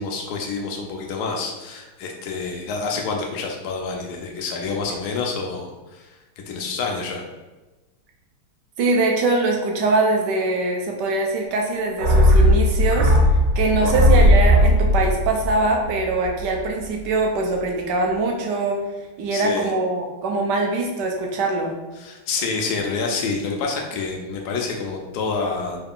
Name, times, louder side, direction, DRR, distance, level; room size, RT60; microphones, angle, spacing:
voice 1, 0.0-6.1 6.5-7.2 13.8-14.0 19.3-19.7 22.0-25.8, left 4 dB, 85° left, 1 dB, 0.8 m, -28 dB
voice 2, 8.8-13.1 13.6-18.8 19.2-21.7, right 2 dB, 80° right, 1 dB, 1.0 m, -22 dB
sound 1, 12.0-16.6 16.9-17.0, left 1 dB, 65° right, 1.3 m, -17 dB
4.7 x 2.3 x 3.6 m, 1.1 s
omnidirectional pair, 2.4 m